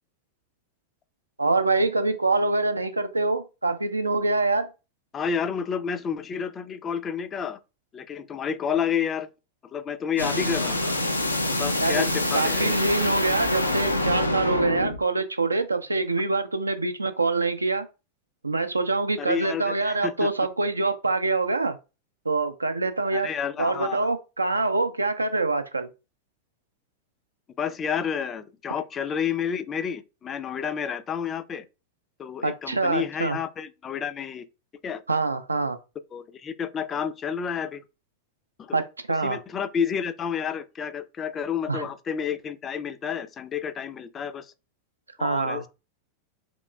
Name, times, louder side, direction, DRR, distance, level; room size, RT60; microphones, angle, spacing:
voice 1, 1.4-4.7 11.8-12.0 12.3-17.9 18.4-21.8 22.3-23.3 23.6-25.9 32.4-33.4 35.1-35.8 38.7-38.8 39.1-39.4 41.7-41.9 45.2-45.6, right 3 dB, 80° right, 0.4 m, -25 dB
voice 2, 5.1-7.6 7.9-9.3 9.6-11.0 11.6-12.7 19.2-20.3 23.1-24.1 27.6-31.7 32.2-34.4 34.8-35.0 36.1-37.8 38.6-38.8 39.2-44.5 45.2-45.7, left 7 dB, 25° left, 0.3 m, -30 dB
sound 1, 10.2-15.0, left 1 dB, 85° left, 0.5 m, -25 dB
2.9 x 2.9 x 2.2 m
figure-of-eight pair, 90°, 0 cm